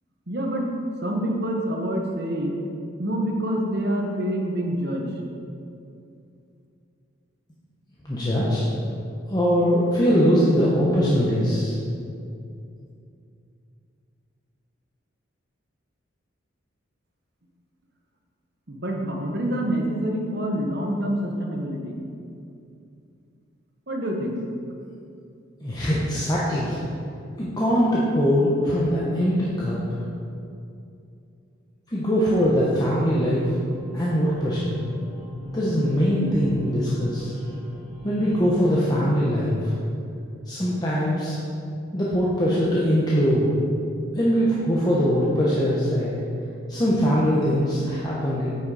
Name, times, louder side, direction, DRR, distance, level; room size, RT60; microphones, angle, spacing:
voice 1, 0.3-0.7 1.0-2.6 3.0-5.1 18.7-22.0 23.9-24.4, equal, 55° right, 1 dB, 1.2 m, -26 dB
voice 2, 8.0-8.6 9.3-11.8 25.6-26.8 27.4-29.8 31.9-33.5 33.9-34.8 35.5-37.3 38.0-39.7 40.5-41.4 41.9-43.5 44.1-46.1 46.7-48.5, equal, 20° left, -7 dB, 1.0 m, -22 dB
sound 1, 32.6-38.6, equal, 30° right, 1.0 m, -38 dB
9.0 x 6.3 x 4.9 m, 2.5 s
head